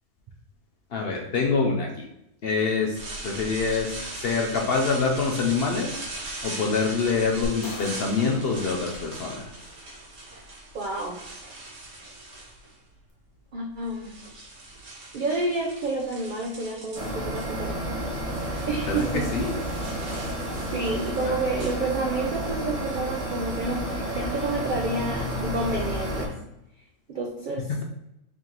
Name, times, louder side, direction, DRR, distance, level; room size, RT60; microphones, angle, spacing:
voice 1, 0.9-2.1 2.4-6.0 6.4-9.5 18.9-19.5 21.2-21.3, left 4 dB, 60° left, 1 dB, 0.6 m, -26 dB
sound 1, 2.9-12.9 13.6-17.4 17.7-22.3, right 2 dB, 90° right, 1.5 m, -40 dB
sound 2, 7.4-9.8, left 2 dB, 90° left, 1.2 m, -41 dB
voice 2, 10.7-11.2 13.5-14.1 15.1-19.3 20.7-26.4 27.1-27.7, right 2 dB, 70° right, 1 dB, 0.4 m, -30 dB
sound 3, 16.9-26.3, equal, 30° right, 0.9 m, -31 dB
3.6 x 2.9 x 3.8 m, 0.85 s
omnidirectional pair, 1.5 m